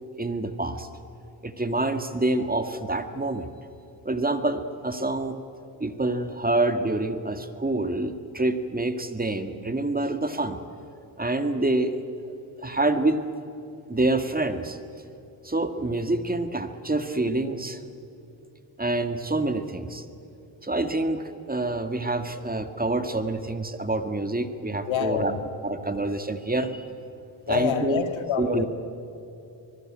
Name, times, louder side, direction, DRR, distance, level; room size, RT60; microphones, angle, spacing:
voice 1, 0.2-0.9 1.4-3.5 4.1-5.4 5.8-10.6 11.2-12.0 12.6-13.3 13.9-14.8 15.4-17.8 18.8-20.0 20.6-25.3 25.6-26.9 27.5-28.0 28.4-28.7, right 2 dB, 15° right, 1.9 m, -27 dB
voice 2, 24.9-25.4 27.5-28.7, left 8 dB, 65° left, 2.2 m, -27 dB
24.0 x 20.5 x 9.0 m
supercardioid pair, 60°, 49 cm